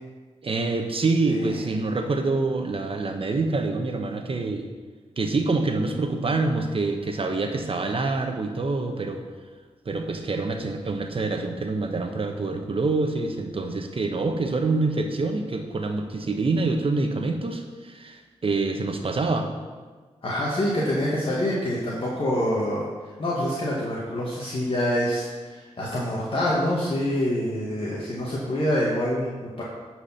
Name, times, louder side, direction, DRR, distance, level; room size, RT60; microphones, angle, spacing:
voice 1, 0.4-4.7 5.2-9.2 9.8-19.5, right 3 dB, 50° right, 4 dB, 1.2 m, -26 dB
voice 2, 1.3-1.6 20.2-22.9 23.2-29.6, left 1 dB, 50° left, -6 dB, 1.9 m, -26 dB
10.0 x 4.8 x 5.7 m, 1.4 s
cardioid pair, 60°, 12 cm